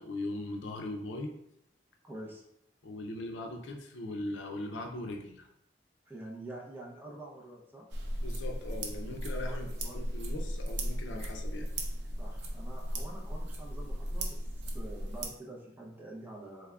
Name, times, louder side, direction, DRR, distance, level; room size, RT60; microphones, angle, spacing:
voice 1, 0.0-1.3 2.8-5.5 8.2-11.7, left 1 dB, 90° left, 3 dB, 0.5 m, -39 dB
voice 2, 2.0-2.4 6.1-7.8 9.4-10.0 12.2-16.7, right 1 dB, 10° right, -3 dB, 0.6 m, -46 dB
sound 1, 7.9-15.3, equal, 75° right, 0.6 m, -36 dB
3.5 x 3.4 x 2.3 m, 0.76 s
head